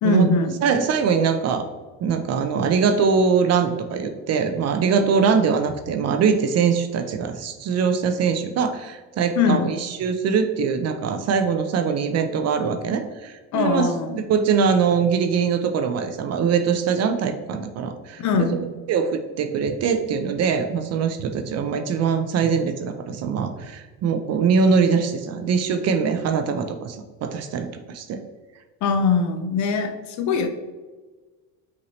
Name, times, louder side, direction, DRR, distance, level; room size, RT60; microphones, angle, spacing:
voice 1, 0.0-0.5 9.4-9.7 13.5-14.2 18.2-18.6 28.8-30.5, left 5 dB, 45° left, 7 dB, 0.6 m, -21 dB
voice 2, 0.6-1.6 2.0-13.9 14.1-18.5 18.9-28.2, right 6 dB, 40° right, 7 dB, 0.4 m, -22 dB
5.7 x 2.7 x 3.0 m, 1.3 s
supercardioid pair, 115°, 42 cm